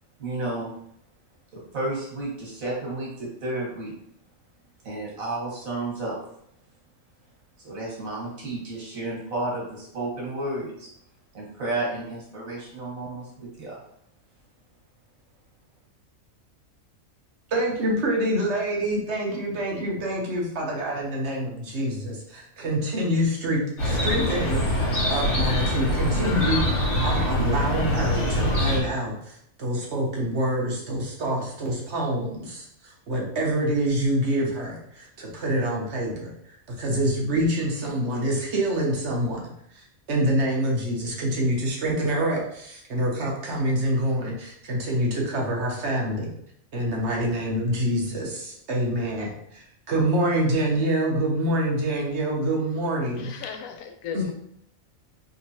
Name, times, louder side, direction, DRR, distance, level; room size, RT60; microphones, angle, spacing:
voice 1, 0.2-0.7 1.5-3.9 4.8-6.2 7.6-10.9 11.3-13.8, right 2 dB, 80° right, -4 dB, 1.8 m, -32 dB
voice 2, 17.5-24.8 25.1-26.6 27.0-36.3 36.8-39.4 39.7-46.3 46.7-53.3 54.1-54.3, right 1 dB, 60° right, -2 dB, 1.1 m, -26 dB
Chirp tweet, 23.8-28.8, equal, 60° left, 1.5 m, -24 dB
voice 3, 53.2-54.3, left 7 dB, 80° left, 5 dB, 1.0 m, -36 dB
3.5 x 2.9 x 2.8 m, 0.72 s
omnidirectional pair, 1.4 m